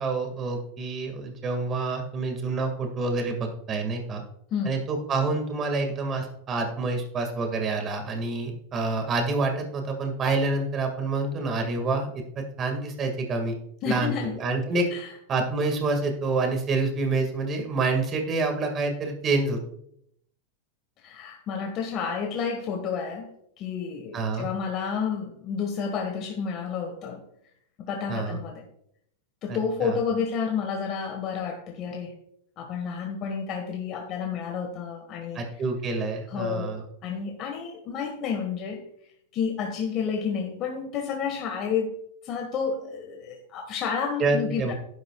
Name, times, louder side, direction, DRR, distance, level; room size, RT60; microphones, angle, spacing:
voice 1, 0.0-4.2 4.6-12.1 12.4-13.6 13.9-14.9 15.3-19.6 24.1-24.5 28.1-28.4 29.5-30.0 35.3-36.8 44.2-44.7, right 3 dB, 30° right, 4 dB, 2.0 m, -27 dB
voice 2, 13.8-14.3 14.9-15.1 21.0-23.3 23.6-27.2 27.8-28.6 29.4-32.1 32.6-35.4 36.3-38.8 39.3-42.0 42.2-44.7, left 6 dB, 40° left, 2 dB, 1.6 m, -30 dB
11.0 x 10.5 x 2.4 m, 0.72 s
hypercardioid pair, 115°, 0 cm